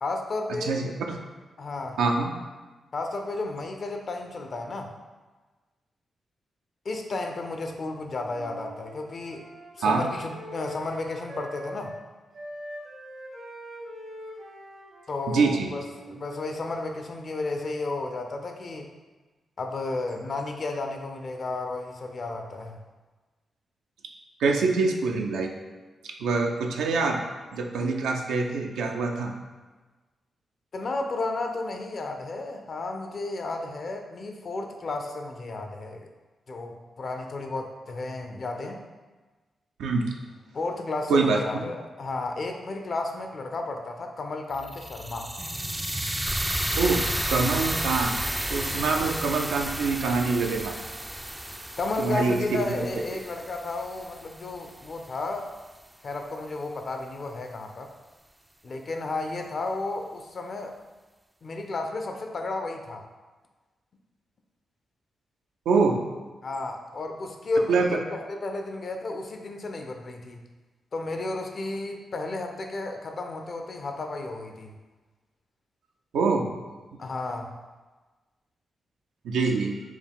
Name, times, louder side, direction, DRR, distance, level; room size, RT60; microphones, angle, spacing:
voice 1, 0.0-0.7 1.6-2.0 2.9-4.9 6.8-9.4 9.7-11.9 15.1-18.9 19.6-22.8 30.7-36.0 36.5-38.8 40.5-45.3 48.8-49.0 51.8-55.5 56.0-57.9 58.6-60.7 61.4-63.0 66.4-70.4 70.9-74.7 77.0-77.6, left 2 dB, 60° left, 4 dB, 0.5 m, -33 dB
voice 2, 0.6-1.2 2.0-2.3 9.8-10.1 15.3-15.7 24.4-25.5 26.0-27.2 27.5-29.4 39.8-40.1 41.1-41.7 46.8-48.2 48.5-50.8 52.0-52.6 65.7-66.1 67.7-68.0 76.1-76.6 79.2-79.8, right 4 dB, 85° right, 2 dB, 0.4 m, -25 dB
Wind instrument woodwind instrument, 8.3-12.0 12.3-16.4, equal, 60° right, 0.9 m, -43 dB
sound 1, 44.5-54.7, right 1 dB, 15° right, 0.3 m, -32 dB
4.4 x 2.3 x 3.5 m, 1.3 s
supercardioid pair, 40°, 0 cm